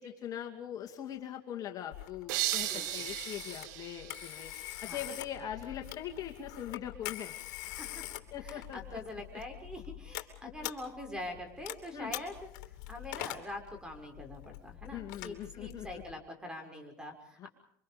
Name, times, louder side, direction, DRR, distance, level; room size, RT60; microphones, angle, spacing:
voice 1, 0.0-4.5 4.8-7.3 8.3-9.0 10.4-10.5 11.9-12.1 14.9-16.0 17.4-17.5, left 10 dB, 40° left, 3 dB, 2.5 m, -41 dB
Telephone, 1.9-16.2, left 16 dB, 70° left, 2.8 m, -45 dB
sound 1, 2.3-5.1, right 15 dB, 75° right, 1.3 m, -36 dB
voice 2, 2.6-3.1 4.8-5.0 7.6-8.1 8.4-12.5 12.9-17.5, left 1 dB, 10° right, 5 dB, 6.0 m, -44 dB
28.0 x 25.0 x 5.2 m, 0.65 s
supercardioid pair, 120°, 10 cm